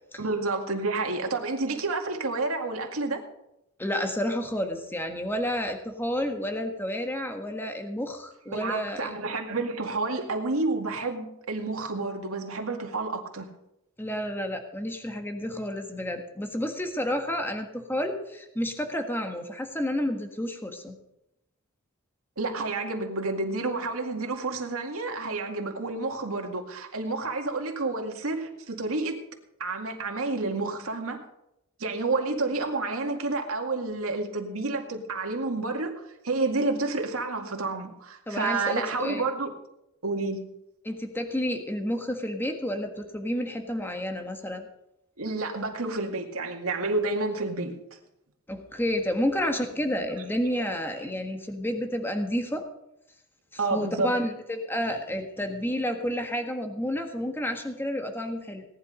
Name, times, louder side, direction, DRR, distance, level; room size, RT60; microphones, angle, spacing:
voice 1, 0.2-3.2 8.5-13.5 22.4-29.2 29.6-31.2 31.8-39.5 40.0-40.5 45.2-47.8 53.6-54.2, right 3 dB, 90° right, 3 dB, 2.2 m, -30 dB
voice 2, 3.8-9.1 14.0-21.0 38.3-39.2 40.8-44.7 48.5-52.6 53.7-58.6, equal, 10° left, 5 dB, 1.5 m, -30 dB
18.0 x 11.0 x 5.1 m, 0.85 s
head